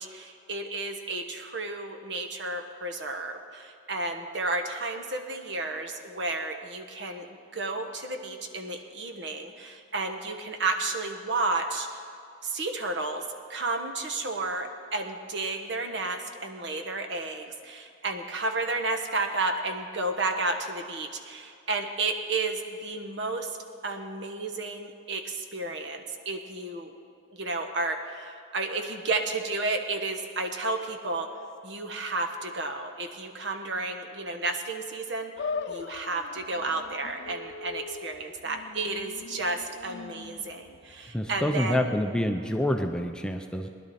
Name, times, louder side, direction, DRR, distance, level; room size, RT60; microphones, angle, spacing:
voice 1, 0.0-7.3 7.5-11.9 12.4-13.2 13.5-23.5 23.8-26.9 27.3-31.3 31.6-35.3 35.7-41.9, right 3 dB, 60° right, 5 dB, 1.1 m, -32 dB
sound 1, 35.4-41.8, left 4 dB, 55° left, 0.4 m, -40 dB
voice 2, 41.1-43.7, left 1 dB, 5° left, 4 dB, 0.5 m, -27 dB
20.0 x 11.0 x 4.2 m, 2.5 s
head